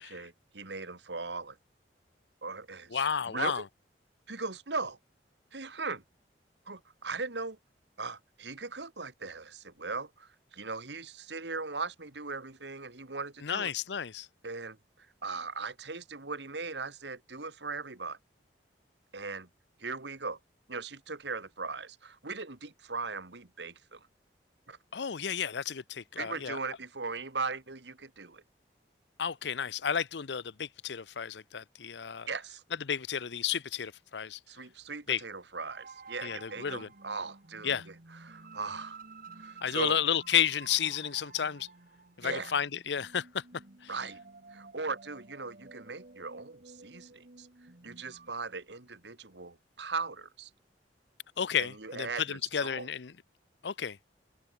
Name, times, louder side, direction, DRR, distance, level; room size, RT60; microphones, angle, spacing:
voice 1, 0.0-1.6 2.4-3.7 4.3-5.0 5.5-6.0 6.7-7.6 8.0-13.7 14.4-18.2 19.1-19.5 19.8-20.4 20.7-24.1 24.7-24.8 26.2-28.4 32.3-32.6 34.5-37.9 38.2-39.0 39.4-40.0 42.2-42.5 43.9-44.2 44.5-47.5 47.8-50.5 51.6-52.9, right 4 dB, 70° right, 2.3 m, -39 dB
voice 2, 2.9-3.6 13.4-14.3 24.9-26.6 29.2-32.3 32.9-34.4 35.1-35.2 36.2-36.9 37.6-37.9 39.6-41.7 42.2-43.4 43.8-43.9 51.4-53.1 53.6-54.0, left 8 dB, 70° left, 0.7 m, -32 dB
sound 1, 35.6-48.3, right 4 dB, 55° right, 1.8 m, -52 dB
open air
head